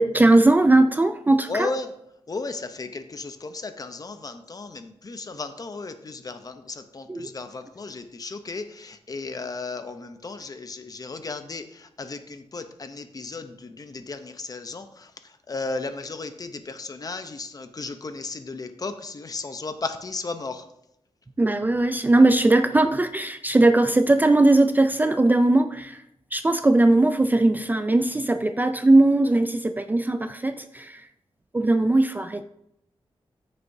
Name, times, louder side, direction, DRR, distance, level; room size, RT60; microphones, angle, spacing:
voice 1, 0.0-1.7 7.1-7.3 21.4-26.0 26.3-31.1 31.5-32.4, right 2 dB, 15° right, 8 dB, 0.3 m, -19 dB
voice 2, 1.5-1.9 2.3-15.1 15.5-20.6, left 3 dB, 35° left, 9 dB, 0.7 m, -35 dB
14.0 x 6.5 x 2.7 m, 0.81 s
wide cardioid pair, 140°, 10 cm